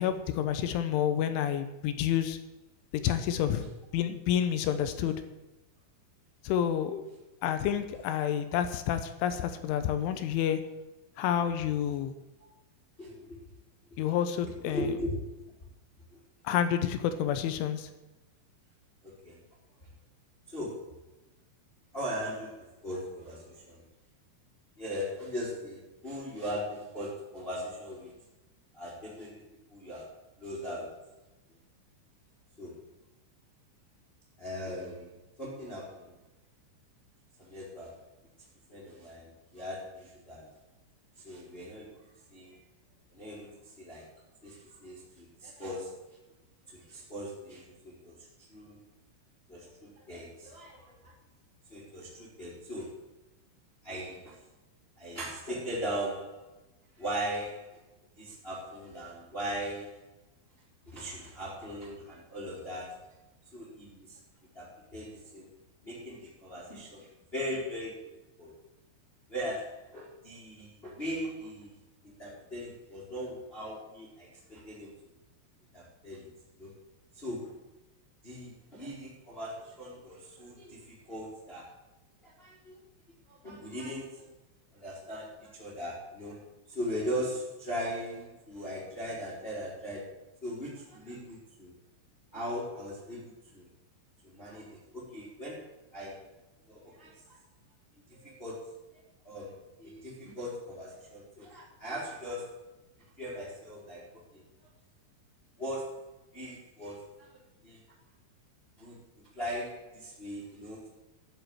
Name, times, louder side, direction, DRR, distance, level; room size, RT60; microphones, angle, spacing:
voice 1, 0.0-2.4 3.0-5.2 6.4-7.0 7.4-10.6 11.2-12.1 14.0-14.9 16.4-17.9, left 9 dB, 75° left, 10 dB, 3.1 m, -29 dB
voice 2, 13.0-13.4 14.7-15.4 19.0-19.3 20.5-20.9 21.9-23.8 24.8-28.1 28.7-29.3 29.7-30.1 30.4-31.0 32.6-32.8 34.4-35.1 35.4-36.2 37.4-38.0 38.7-40.5 41.2-42.0 42.3-42.6 43.1-44.1 44.4-46.1 46.7-48.2 48.5-48.8 49.5-51.1 51.7-53.0 53.8-54.4 55.0-56.5 57.0-57.8 58.2-60.0 60.9-63.0 63.5-64.2 64.5-65.5 65.8-68.0 68.4-68.5 69.3-71.7 72.0-74.9 75.7-76.3 76.6-76.7 77.1-77.6 78.2-81.7 82.2-82.8 83.3-84.3 84.7-86.4 86.7-90.2 90.4-91.7 92.3-93.7 94.2-96.2 96.7-97.4 98.1-102.6 103.2-104.4 105.6-107.3 107.6-107.8 108.8-110.9, equal, 15° left, -5 dB, 2.7 m, -39 dB
13.0 x 7.5 x 9.1 m, 1.0 s
omnidirectional pair, 6.0 m